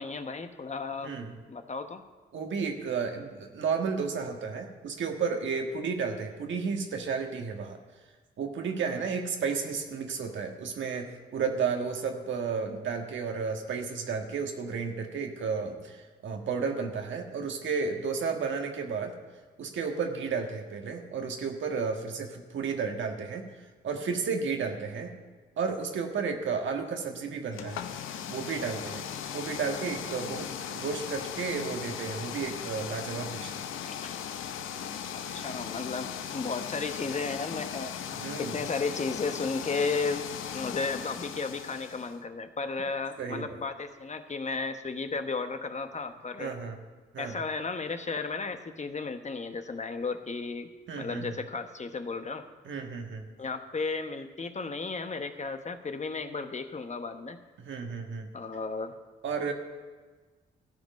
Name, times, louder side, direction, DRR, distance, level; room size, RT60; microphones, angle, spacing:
voice 1, 0.0-1.1 1.5-2.0 33.9-34.2 35.1-40.2 40.5-46.6 47.2-50.7 50.9-52.4 53.4-57.4 58.3-59.0, left 4 dB, 35° left, 8 dB, 1.0 m, -34 dB
voice 2, 1.0-1.3 2.3-7.8 8.4-19.2 19.6-23.5 23.8-25.1 25.6-27.8 28.3-29.1 29.3-33.7 38.1-38.5 43.2-43.6 46.4-46.8 47.1-47.4 50.9-51.4 52.6-53.3 57.6-58.3 59.2-59.5, right 5 dB, 65° right, 4 dB, 1.5 m, -32 dB
sound 1, 27.5-42.2, left 8 dB, 75° left, 0.7 m, -38 dB
14.0 x 5.2 x 9.1 m, 1.4 s
supercardioid pair, 55°, 21 cm